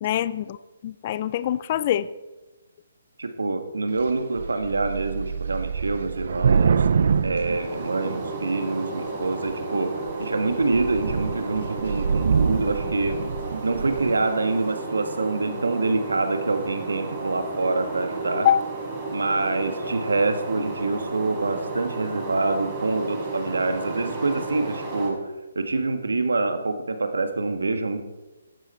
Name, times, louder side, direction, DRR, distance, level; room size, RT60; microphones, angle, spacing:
voice 1, 0.0-0.6 0.8-2.1 18.3-18.6, left 11 dB, 35° left, 17 dB, 0.5 m, -24 dB
voice 2, 3.2-6.8 7.2-13.2 13.6-18.5 19.1-28.0, right 3 dB, 85° right, 7 dB, 1.9 m, -26 dB
Thunder / Rain, 4.0-4.1 4.4-8.5 9.2-9.7 10.1-10.2 10.5-14.3, right 6 dB, 60° right, 0.7 m, -25 dB
sound 1, 7.3-25.1, right 2 dB, 25° right, 5.1 m, -33 dB
15.0 x 12.5 x 4.4 m, 1.1 s
hypercardioid pair, 150°, 0 cm